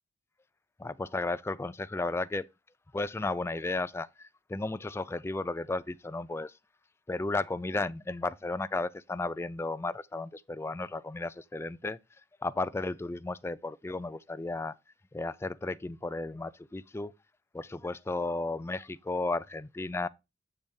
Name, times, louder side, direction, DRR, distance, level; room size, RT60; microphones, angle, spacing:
voice 1, 0.8-2.5 2.9-6.5 7.1-12.0 12.4-14.7 15.1-17.1 17.5-20.1, left 2 dB, 15° left, 0.3 m, -34 dB
7.9 x 7.0 x 2.7 m
head